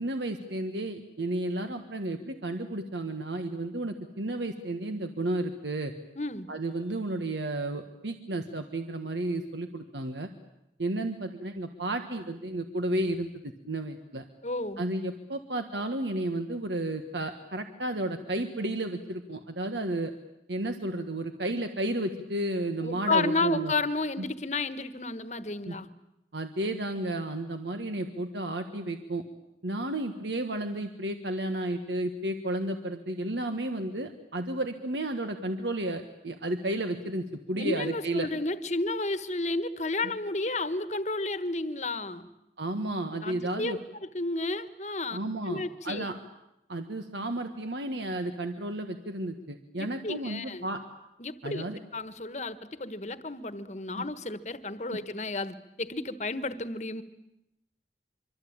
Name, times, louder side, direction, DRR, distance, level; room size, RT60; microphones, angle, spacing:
voice 1, 0.0-5.9 6.5-10.3 10.8-14.2 14.8-20.1 20.5-23.7 25.7-25.8 26.3-29.2 29.6-38.3 42.6-43.8 45.1-46.1 46.7-50.8 51.4-51.8 54.0-54.1 54.9-55.0, right 1 dB, 85° right, 6 dB, 1.6 m, -32 dB
voice 2, 6.1-6.5 14.4-14.8 22.8-25.9 37.5-42.3 43.2-43.8 44.1-45.2 45.5-46.1 49.8-50.6 51.2-51.7 51.9-57.0, left 2 dB, 40° left, 12 dB, 1.3 m, -32 dB
25.5 x 24.5 x 8.8 m, 0.87 s
head